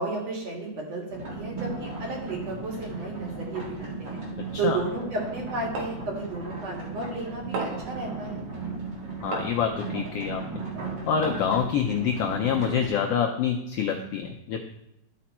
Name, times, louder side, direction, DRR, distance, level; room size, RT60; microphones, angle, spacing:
voice 1, 0.0-4.2 4.6-8.5, right 3 dB, 60° right, -2 dB, 3.2 m, -33 dB
sound 1, 1.1-12.9, right 3 dB, 40° right, 2.3 m, -36 dB
sound 2, 5.8-6.1 7.5-7.9 9.3-9.7 11.2-11.6, right 3 dB, 85° right, 2.9 m, -33 dB
voice 2, 9.2-10.6 11.1-14.6, left 7 dB, 80° left, 2 dB, 1.4 m, -26 dB
12.5 x 5.1 x 4.3 m, 0.84 s
omnidirectional pair, 3.4 m